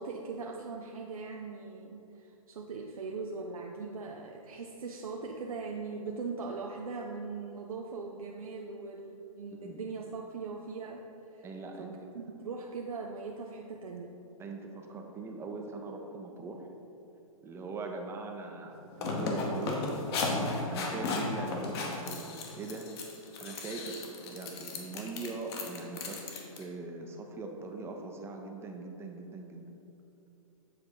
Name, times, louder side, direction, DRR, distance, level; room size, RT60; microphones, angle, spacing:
voice 1, 0.0-11.5 11.8-14.2, right 4 dB, 75° right, 1 dB, 0.6 m, -40 dB
voice 2, 9.5-9.9 11.4-11.9 14.4-16.7 17.4-19.9 20.7-22.3 22.5-22.9 23.4-26.2 26.6-29.7, right 3 dB, 15° right, 3 dB, 0.6 m, -41 dB
sound 1, 18.7-26.6, left 3 dB, 45° left, 1.1 m, -35 dB
7.6 x 3.8 x 4.8 m, 2.9 s
hypercardioid pair, 125°, 18 cm